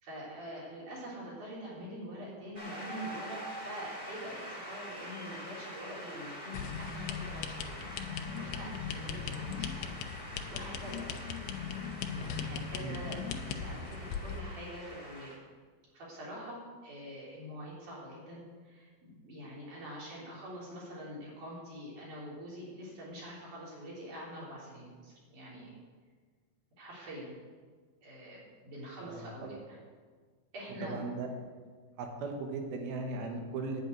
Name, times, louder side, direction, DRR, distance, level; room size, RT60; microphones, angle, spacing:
voice 1, 0.0-7.8 8.3-9.8 10.2-11.3 12.1-15.3 15.9-25.8 26.8-27.3 28.0-29.8 30.5-31.0, equal, 55° right, -6 dB, 4.8 m, -45 dB
Shout / Cheering / Applause, 2.5-15.3, equal, 20° right, 2.0 m, -45 dB
sound 1, 6.5-14.4, left 6 dB, 80° left, 2.6 m, -39 dB
voice 2, 30.8-31.3 32.0-33.8, right 3 dB, 75° right, 3 dB, 3.1 m, -37 dB
10.5 x 6.4 x 9.1 m, 1.5 s
omnidirectional pair, 4.5 m